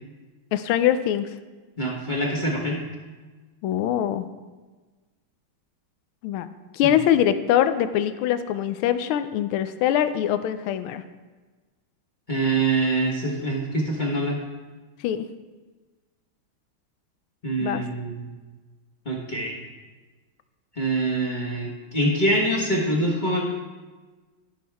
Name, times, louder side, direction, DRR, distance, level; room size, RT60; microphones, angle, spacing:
voice 1, 0.5-1.3 3.6-4.3 6.2-6.5 6.7-11.0 15.0-15.2 17.6-17.8, left 10 dB, 85° left, 11 dB, 1.4 m, -23 dB
voice 2, 1.8-2.8 6.8-6.9 12.3-14.4 17.4-18.3 19.0-19.5 20.8-23.4, right 2 dB, 25° left, -3 dB, 1.2 m, -24 dB
13.0 x 6.2 x 3.4 m, 1.3 s
omnidirectional pair, 2.2 m